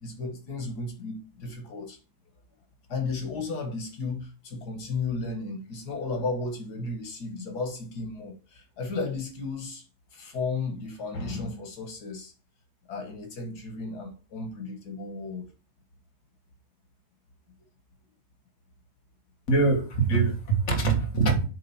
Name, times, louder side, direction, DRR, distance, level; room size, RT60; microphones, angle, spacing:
voice 1, 0.0-2.0 2.9-9.8 10.1-12.3 12.9-15.5, left 3 dB, 85° left, 2.0 m, -34 dB
voice 2, 19.5-21.4, right 4 dB, 50° left, 2.0 m, -23 dB
7.7 x 3.5 x 5.6 m
omnidirectional pair, 1.6 m